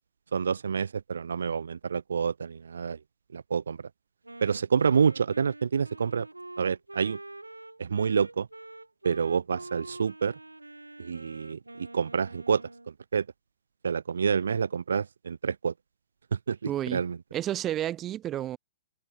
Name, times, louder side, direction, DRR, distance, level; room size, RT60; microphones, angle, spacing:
voice 1, 0.3-3.0 3.3-3.8 4.4-6.3 6.6-7.2 7.8-8.5 9.0-10.3 11.0-12.6 13.1-13.2 13.8-15.7 16.3-17.2, right 6 dB, 70° right, 0.9 m, -28 dB
Wind instrument woodwind instrument, 4.2-12.9, right 2 dB, 85° right, 1.9 m, -46 dB
voice 2, 16.7-17.0 17.3-18.6, right 12 dB, 25° right, 2.6 m, -31 dB
figure-of-eight pair, 110°, 0 cm